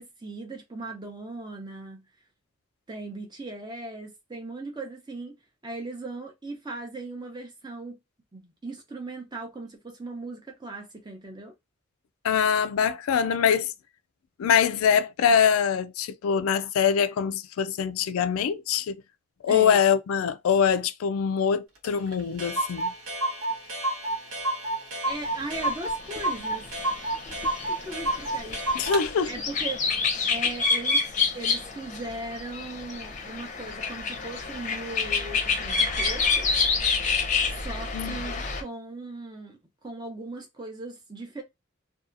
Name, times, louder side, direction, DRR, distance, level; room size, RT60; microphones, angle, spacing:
voice 1, 0.0-2.0 2.9-5.4 5.6-8.0 8.3-11.5 19.5-19.9 23.6-23.7 25.0-26.7 27.6-28.9 29.3-29.8 30.3-31.0 31.3-36.5 37.6-41.4, right 2 dB, 20° right, 0.6 m, -38 dB
voice 2, 12.2-13.7 14.4-19.0 19.4-22.9 28.7-29.3 37.9-38.2, left 7 dB, 80° left, 0.3 m, -23 dB
Clock, 21.8-21.9 22.1-22.2 22.4-29.0, right 1 dB, 85° right, 0.9 m, -30 dB
sound 1, 25.6-25.9 26.1-38.6, left 4 dB, 35° left, 0.6 m, -28 dB
2.7 x 2.3 x 2.4 m
head